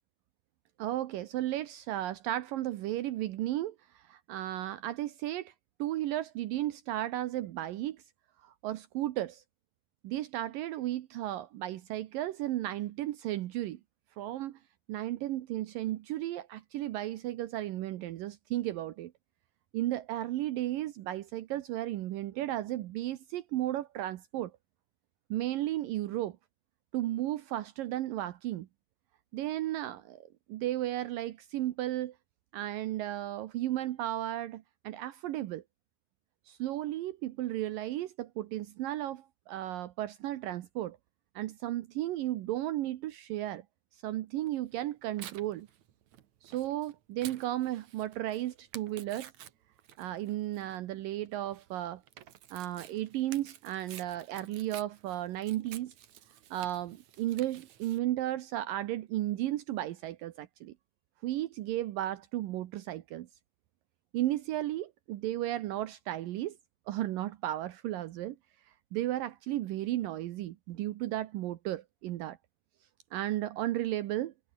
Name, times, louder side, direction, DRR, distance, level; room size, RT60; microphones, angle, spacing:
voice 1, 0.8-5.5 5.8-8.0 8.4-9.4 10.0-13.8 14.2-14.6 14.9-19.1 19.7-24.5 25.3-26.4 26.9-28.7 29.3-32.2 32.5-35.6 36.5-41.0 41.4-43.6 44.0-45.7 46.4-49.3 50.0-52.0 52.5-55.9 56.5-60.7 61.2-63.3 64.1-66.6 66.9-68.4 68.9-72.4 73.1-74.3, right 14 dB, 75° right, 2.6 m, -34 dB
Tearing, 44.4-58.0, right 11 dB, 60° right, 2.5 m, -52 dB
omnidirectional pair, 4.1 m